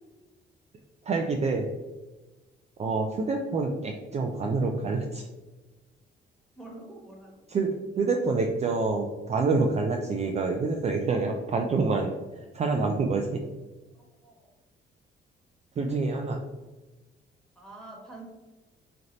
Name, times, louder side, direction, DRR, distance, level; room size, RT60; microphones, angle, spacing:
voice 1, 1.0-1.7 2.8-5.3 7.5-7.7 8.0-13.4 15.8-16.4, right 3 dB, 35° right, 2 dB, 0.4 m, -27 dB
voice 2, 6.5-7.5 13.9-14.5 17.5-18.2, right 2 dB, 5° left, -2 dB, 1.3 m, -46 dB
3.2 x 2.6 x 3.8 m, 1.2 s
cardioid pair, 90°, 20 cm